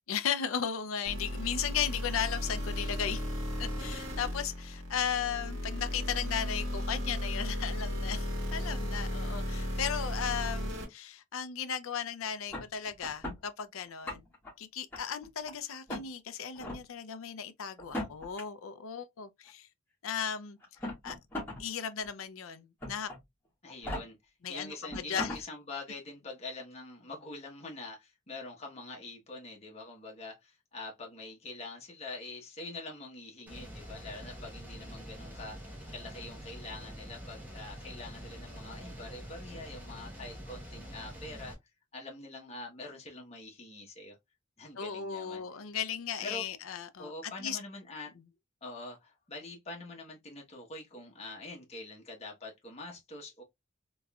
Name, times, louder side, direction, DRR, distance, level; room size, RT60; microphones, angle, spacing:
voice 1, 0.1-3.3 3.6-14.2 14.6-19.7 20.0-20.6 21.0-21.2 21.6-23.1 24.4-25.3 44.8-47.6, left 8 dB, 85° left, 0.5 m, -36 dB
sound 1, 1.1-10.8, left 1 dB, 70° right, 1.4 m, -35 dB
sound 2, 12.5-13.4 13.9-14.5 14.9-15.5 15.9-16.1 16.6-16.8 17.8-18.4 19.5-19.6 20.6-21.6 22.0-22.1 22.8-23.2 23.7-24.0 24.6-24.7 24.9-25.4, left 1 dB, 10° left, 1.7 m, -38 dB
voice 2, 23.6-24.1 24.5-41.5 41.9-44.2 44.6-45.4 46.2-46.4 47.0-48.1 48.6-53.4, left 2 dB, 30° left, 1.0 m, -45 dB
sound 3, 33.5-41.5, equal, 10° right, 1.0 m, -46 dB
3.6 x 3.0 x 2.3 m
head